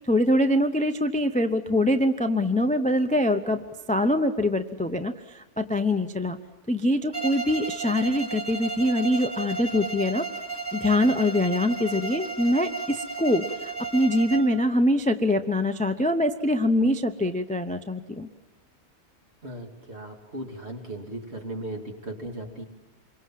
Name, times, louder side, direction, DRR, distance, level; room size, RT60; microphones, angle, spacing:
voice 1, 0.0-6.4 6.7-10.2 10.7-18.3, left 1 dB, 10° left, 9 dB, 0.5 m, -24 dB
Bowed string instrument, 7.1-14.6, right 4 dB, 15° right, 2.6 m, -34 dB
voice 2, 19.4-22.6, right 1 dB, 45° right, 2 dB, 3.0 m, -37 dB
27.5 x 23.0 x 7.6 m, 1.1 s
omnidirectional pair, 1.5 m